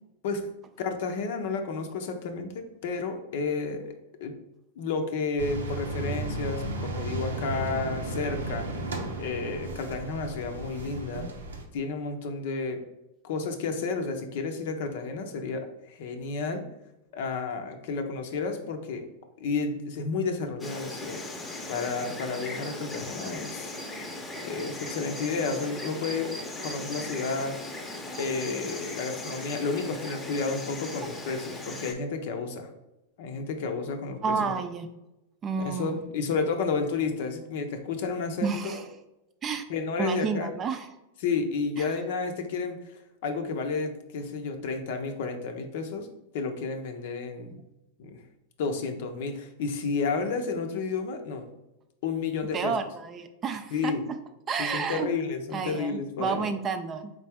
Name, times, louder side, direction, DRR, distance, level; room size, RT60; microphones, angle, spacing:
voice 1, 0.8-3.9 4.2-4.3 4.8-8.7 9.2-11.3 11.7-12.8 13.2-16.6 17.1-19.1 19.4-21.2 21.7-23.7 24.4-26.3 26.6-27.6 28.2-32.7 33.2-34.6 35.6-38.8 39.7-40.5 41.2-46.1 46.3-47.6 48.0-48.2 48.6-51.5 52.0-52.7 53.7-54.1 54.6-56.5, left 4 dB, 60° left, 6 dB, 0.6 m, -31 dB
sound 1, 5.4-11.6, right 2 dB, 80° right, 0.7 m, -34 dB
Insect, 20.6-31.9, left 2 dB, 15° left, 0.8 m, -38 dB
voice 2, 34.2-34.9 35.4-36.0 38.4-38.8 39.4-39.6 40.0-40.9 41.8-41.9 52.5-53.9 54.5-55.1 55.5-57.1, right 5 dB, 30° right, 8 dB, 0.5 m, -30 dB
4.1 x 3.2 x 3.5 m, 0.93 s
hypercardioid pair, 100°, 0 cm